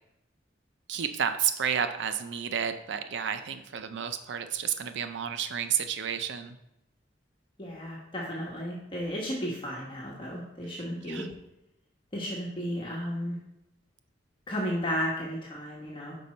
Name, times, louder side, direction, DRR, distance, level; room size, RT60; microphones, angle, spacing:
voice 1, 0.9-6.6 11.1-11.3, right 8 dB, 65° right, 9 dB, 0.4 m, -31 dB
voice 2, 7.6-11.3 12.1-13.4 14.5-16.2, equal, 25° left, -4 dB, 1.2 m, -33 dB
5.4 x 5.1 x 4.2 m, 0.86 s
head